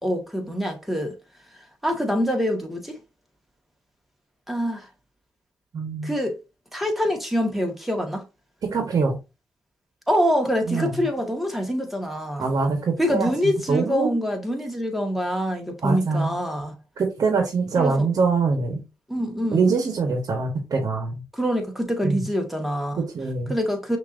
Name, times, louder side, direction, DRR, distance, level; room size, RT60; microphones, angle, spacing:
voice 1, 0.0-1.2 1.8-3.0 4.5-4.9 6.0-6.4 6.7-8.2 10.1-12.5 13.0-16.7 17.8-18.1 19.1-19.7 21.3-23.0 23.5-24.0, equal, ahead, 1.7 m, -25 dB
voice 2, 5.7-6.1 8.6-9.2 10.7-11.0 12.4-13.3 13.7-14.1 15.8-16.3 17.0-18.8 19.5-21.2 22.0-22.3 23.1-23.5, right 4 dB, 60° right, 1.3 m, -23 dB
5.9 x 2.9 x 2.7 m
supercardioid pair, 40°, 7 cm